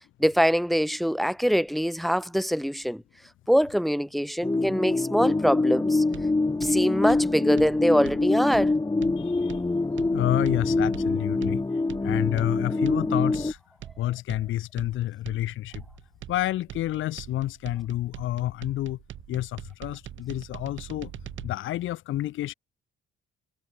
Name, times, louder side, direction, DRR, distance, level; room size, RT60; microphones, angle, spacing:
voice 1, 0.2-3.0 3.5-6.0 6.4-8.7, equal, ahead, 0.8 m, -24 dB
sound 1, 4.4-13.5, left 3 dB, 20° left, 3.0 m, -25 dB
sound 2, 6.1-21.5, right 12 dB, 75° right, 2.2 m, -43 dB
voice 2, 9.2-9.6 10.1-11.6 12.0-13.6 14.0-15.8 16.3-19.0 19.3-21.1 21.4-22.5, left 14 dB, 85° left, 1.9 m, -29 dB
cardioid pair, 90°, 20 cm